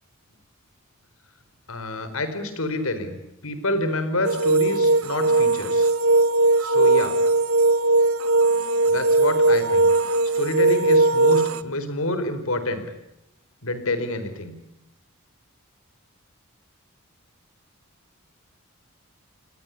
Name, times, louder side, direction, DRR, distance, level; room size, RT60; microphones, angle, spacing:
voice 1, 1.7-3.2 3.4-5.9 6.6-7.2 8.9-9.9 10.3-12.8 13.6-14.5, left 2 dB, 85° left, 11 dB, 4.6 m, -27 dB
sound 1, 4.2-11.6, right 2 dB, 85° right, 0.9 m, -19 dB
28.5 x 20.5 x 8.5 m, 0.88 s
head